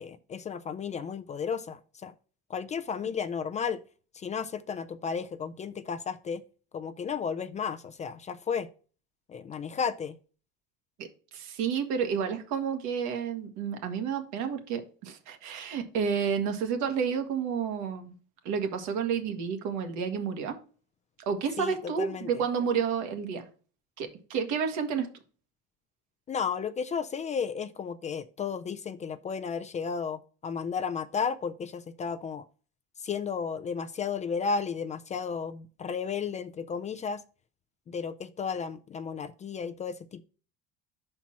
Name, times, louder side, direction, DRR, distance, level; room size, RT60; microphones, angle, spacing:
voice 1, 0.0-2.1 2.5-3.8 4.1-6.4 6.7-8.7 9.3-10.2 21.6-22.3 26.3-32.4 33.0-37.2 37.9-40.2, left 6 dB, 25° left, 0.3 m, -33 dB
voice 2, 11.0-18.1 18.4-20.6 21.2-23.5 24.0-25.1, right 6 dB, 75° right, 1.5 m, -30 dB
5.7 x 4.3 x 5.9 m
cardioid pair, 135°, 29 cm